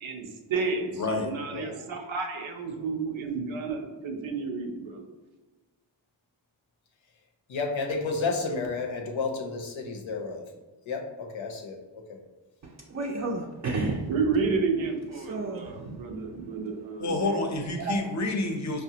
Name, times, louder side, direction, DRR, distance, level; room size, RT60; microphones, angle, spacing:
voice 1, 0.0-5.1 14.1-17.4 17.8-18.0, right 4 dB, 90° right, 3 dB, 0.6 m, -31 dB
voice 2, 1.0-1.3 17.0-18.8, left 2 dB, 40° left, 4 dB, 0.6 m, -28 dB
voice 3, 7.5-10.4 10.9-12.2, left 4 dB, 85° left, 2 dB, 0.7 m, -31 dB
voice 4, 12.6-14.1 15.3-16.1, right 2 dB, 40° right, 0 dB, 0.4 m, -32 dB
4.7 x 2.1 x 2.7 m, 1.2 s
wide cardioid pair, 70°, 45 cm